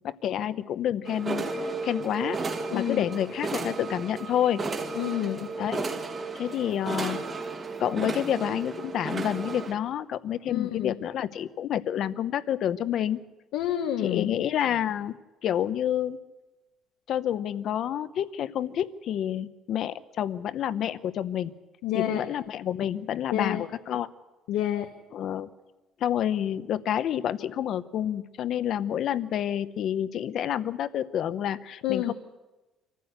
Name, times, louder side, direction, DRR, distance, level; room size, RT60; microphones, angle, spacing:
voice 1, 0.0-2.4 2.7-4.6 5.6-5.9 6.4-7.2 7.8-13.2 14.0-16.2 17.1-21.5 22.0-24.1 25.1-25.5 26.0-32.1, left 10 dB, 45° left, 14 dB, 0.8 m, -29 dB
sound 1, 1.1-9.7, right 3 dB, 20° right, 1.6 m, -33 dB
voice 2, 2.7-3.0 4.9-5.5 10.5-10.9 13.5-14.3 21.8-22.2 23.3-23.6 24.5-24.9 31.8-32.1, left 11 dB, 80° left, 5 dB, 1.3 m, -28 dB
25.5 x 15.0 x 8.0 m, 1.1 s
cardioid pair, 180°, 0 cm